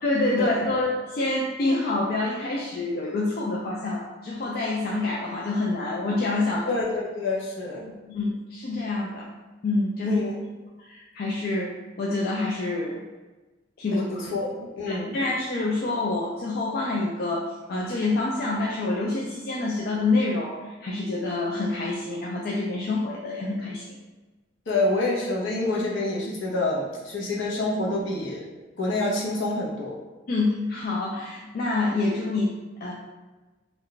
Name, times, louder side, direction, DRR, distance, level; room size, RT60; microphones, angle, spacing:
voice 1, 0.0-6.7 8.1-9.3 9.6-10.2 10.8-13.0 13.8-14.0 14.9-24.0 30.3-32.5 32.8-32.9, left 2 dB, 50° left, -3 dB, 0.3 m, -27 dB
voice 2, 6.7-7.9 10.0-10.3 13.9-15.1 24.7-28.5 28.8-30.0, left 2 dB, 75° left, -4 dB, 0.7 m, -27 dB
2.4 x 2.1 x 3.8 m, 1.2 s
head